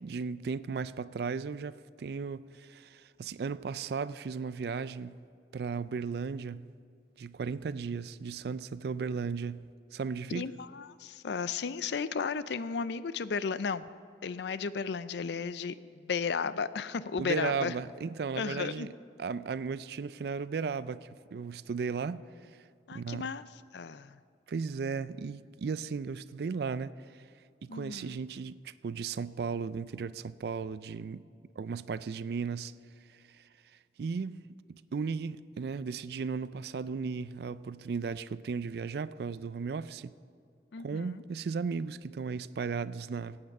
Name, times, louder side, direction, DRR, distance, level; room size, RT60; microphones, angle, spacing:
voice 1, 0.0-5.2 5.5-6.7 7.2-10.5 17.2-18.9 19.2-22.2 22.5-22.6 22.9-23.3 24.5-27.2 27.6-31.2 31.6-32.7 33.1-33.4 34.0-34.4 34.9-40.1 40.8-43.4, right 5 dB, 60° right, 0.3 m, -35 dB
voice 2, 10.3-13.8 14.2-17.7 18.4-18.9 22.9-23.4 23.7-24.2 27.7-28.2 40.7-41.2, left 5 dB, 70° left, 0.4 m, -34 dB
17.0 x 8.7 x 5.4 m
head